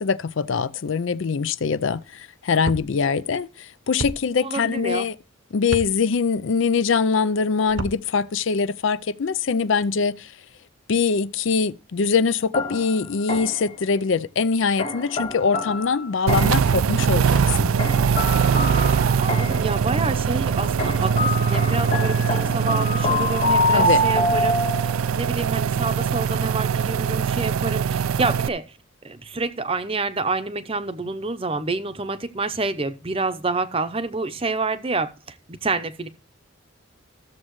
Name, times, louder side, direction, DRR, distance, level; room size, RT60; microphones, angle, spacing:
voice 1, 0.0-5.2 5.5-10.3 10.9-17.7 23.7-24.0, left 5 dB, 65° left, 0.5 m, -23 dB
sound 1, 2.6-2.9 4.0-4.2 5.7-5.9 7.7-8.0, right 2 dB, 60° right, 0.9 m, -29 dB
voice 2, 4.4-5.1 19.2-28.6 29.0-35.1 35.5-36.1, right 3 dB, 25° right, 0.7 m, -28 dB
sound 2, 12.5-13.7 14.8-16.8 17.8-19.8 20.8-25.1, left 1 dB, 30° left, 1.1 m, -25 dB
sound 3, 16.3-28.5, right 6 dB, 75° right, 0.4 m, -22 dB
14.5 x 7.3 x 3.1 m
head